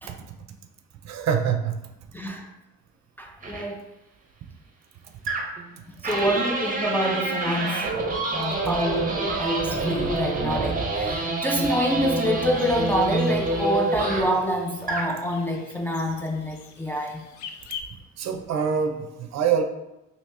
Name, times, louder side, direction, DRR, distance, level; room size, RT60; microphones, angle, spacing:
voice 1, 1.0-1.8 18.2-19.6, right 7 dB, 60° right, 5 dB, 0.5 m, -25 dB
voice 2, 2.1-2.5 3.2-3.8 6.0-7.9 8.3-17.2, equal, 5° left, 1 dB, 0.3 m, -27 dB
sound 1, 3.4-3.6 5.3-5.7 6.0-14.4 14.8-15.1, right 2 dB, 30° right, 0.7 m, -27 dB
sound 2, 11.8-17.8, left 8 dB, 70° left, 0.4 m, -45 dB
2.8 x 2.7 x 3.2 m, 0.96 s
cardioid pair, 90°, 30 cm